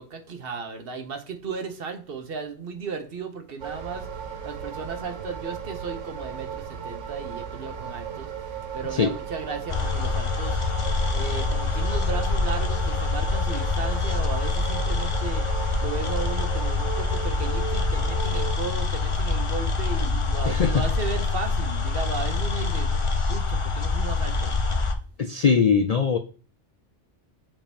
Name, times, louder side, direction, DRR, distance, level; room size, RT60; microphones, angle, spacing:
voice 1, 0.0-10.8 11.1-22.9 23.3-24.5, right 5 dB, 55° right, 1.0 m, -35 dB
sound 1, 3.6-18.6, right 7 dB, 80° right, 1.1 m, -36 dB
sound 2, 9.7-24.9, left 4 dB, 30° left, 0.6 m, -25 dB
voice 2, 20.4-20.8 25.2-26.2, left 6 dB, 70° left, 0.3 m, -21 dB
7.3 x 2.9 x 5.1 m
omnidirectional pair, 1.3 m